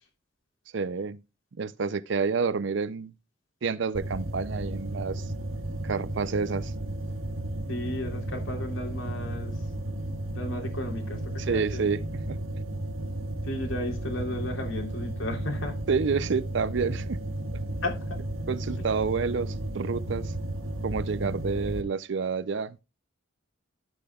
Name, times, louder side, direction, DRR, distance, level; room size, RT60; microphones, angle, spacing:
voice 1, 0.7-1.2 1.6-3.1 3.6-5.3 5.8-6.7 11.5-12.4 15.9-17.2 18.5-20.3 20.8-22.8, right 5 dB, 60° right, 0.5 m, -29 dB
sound 1, 3.9-21.8, right 1 dB, 90° right, 1.8 m, -33 dB
voice 2, 7.7-9.7 10.3-11.9 13.4-15.8 17.8-18.2 18.8-18.9, left 1 dB, 80° left, 3.3 m, -34 dB
12.0 x 8.6 x 2.3 m
head